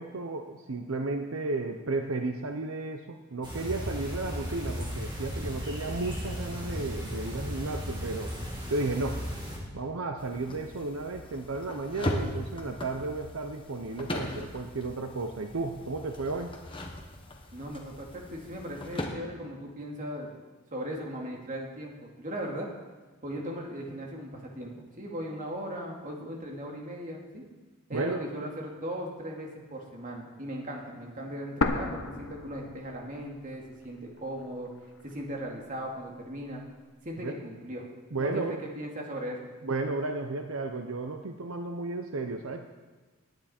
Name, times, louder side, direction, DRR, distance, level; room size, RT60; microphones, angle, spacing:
voice 1, 0.0-8.4 8.7-9.2 9.7-16.5 27.9-28.2 37.2-37.4 38.1-38.6 39.6-42.6, right 3 dB, 80° right, 5 dB, 0.8 m, -33 dB
sound 1, 3.4-9.6, equal, 20° right, 2.7 m, -36 dB
sound 2, 10.2-19.1, left 1 dB, 25° left, 1.5 m, -39 dB
voice 2, 17.5-20.3 20.7-22.7 23.2-27.4 27.9-34.7 35.0-36.6 37.0-37.8 38.2-38.5 38.7-39.4, equal, 40° right, -1 dB, 2.4 m, -38 dB
sound 3, 31.6-33.5 33.8-33.9 34.6-35.6, left 3 dB, 70° left, 1.1 m, -33 dB
18.5 x 9.8 x 4.4 m, 1.3 s
head